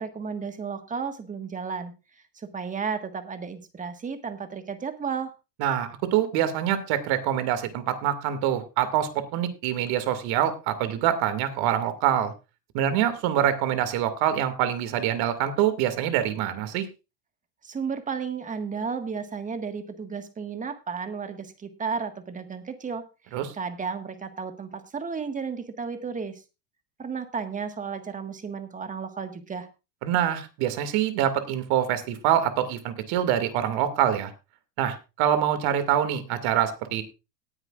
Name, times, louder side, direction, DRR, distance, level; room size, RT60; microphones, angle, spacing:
voice 1, 0.0-1.9 2.3-5.3 17.6-23.0 23.3-26.4 27.0-29.7, right 6 dB, 15° right, 8 dB, 1.6 m, -33 dB
voice 2, 5.6-12.3 12.7-16.9 23.3-23.5 30.0-34.3 34.8-37.0, right 10 dB, 45° right, 10 dB, 2.4 m, -25 dB
18.5 x 9.8 x 2.5 m, 0.28 s
hypercardioid pair, 120°, 49 cm